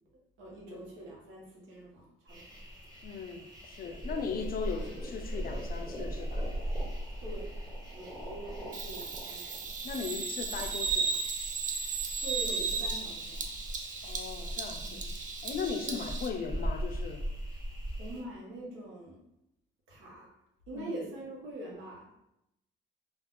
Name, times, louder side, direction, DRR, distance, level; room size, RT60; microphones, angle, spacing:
voice 1, 0.4-2.4 7.2-7.5 7.9-9.7 12.2-13.5 14.8-15.1 15.8-16.1 18.0-19.2 19.9-20.3 20.7-22.1, right 1 dB, 90° right, -3 dB, 0.9 m, -44 dB
sound 1, 2.3-18.2, equal, 20° right, 0.9 m, -40 dB
voice 2, 3.0-6.5 8.2-8.4 9.8-11.2 14.0-15.0 15.4-17.3 20.7-21.0, left 5 dB, 50° left, 6 dB, 0.4 m, -38 dB
sound 2, 3.8-10.7, equal, 5° left, 0.8 m, -47 dB
Bird vocalization bird call bird song, 8.7-16.3, right 5 dB, 40° right, 0.4 m, -35 dB
2.3 x 2.2 x 3.5 m, 0.84 s
cardioid pair, 90°, 20 cm